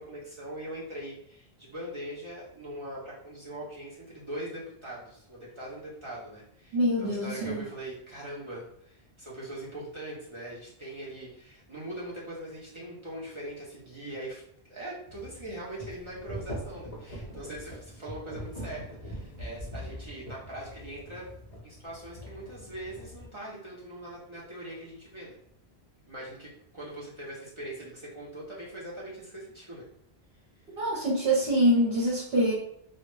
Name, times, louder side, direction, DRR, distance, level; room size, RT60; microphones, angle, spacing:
voice 1, 0.0-21.3 21.6-25.4 26.1-29.9, right 1 dB, 40° right, -6 dB, 0.4 m, -41 dB
voice 2, 6.7-7.6 30.8-32.5, equal, 65° right, -6 dB, 1.0 m, -25 dB
sound 1, 15.1-23.3, equal, 45° left, 0.5 m, -42 dB
2.1 x 2.0 x 3.0 m, 0.69 s
omnidirectional pair, 1.1 m